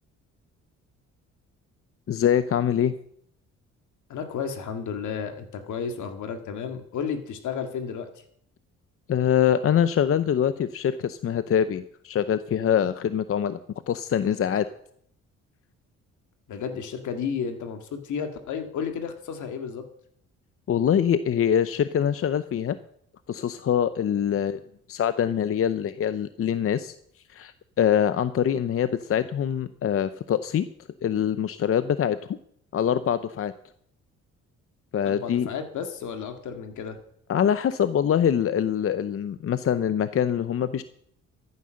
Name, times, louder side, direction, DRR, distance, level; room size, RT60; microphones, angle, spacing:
voice 1, 2.1-2.9 9.1-13.6 13.9-14.6 20.7-22.8 23.3-24.6 24.9-26.9 27.3-30.6 31.0-32.4 32.7-33.5 34.9-35.5 37.3-40.8, left 9 dB, 50° left, 13 dB, 0.7 m, -24 dB
voice 2, 4.1-8.1 16.5-19.8 35.0-37.0, left 6 dB, 75° left, 6 dB, 2.1 m, -32 dB
14.0 x 9.7 x 6.4 m, 0.68 s
cardioid pair, 90°, 30 cm